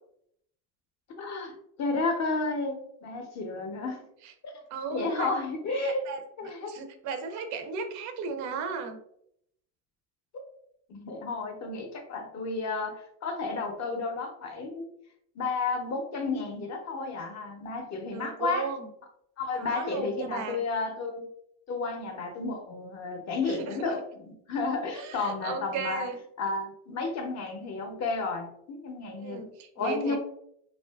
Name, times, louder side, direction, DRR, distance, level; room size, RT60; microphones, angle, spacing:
voice 1, 1.2-4.0 4.4-4.5 4.9-6.1 6.4-6.8 10.9-14.9 15.4-18.7 19.4-21.3 21.7-26.1 26.4-29.5 29.8-30.2, left 3 dB, 35° left, 4 dB, 0.6 m, -32 dB
voice 2, 4.7-5.3 5.7-6.2 6.7-9.0 18.1-18.9 19.5-20.6 23.4-23.9 24.9-26.2 29.2-30.2, right 5 dB, 40° right, 7 dB, 0.4 m, -35 dB
2.6 x 2.4 x 2.2 m, 0.72 s
supercardioid pair, 105°, 48 cm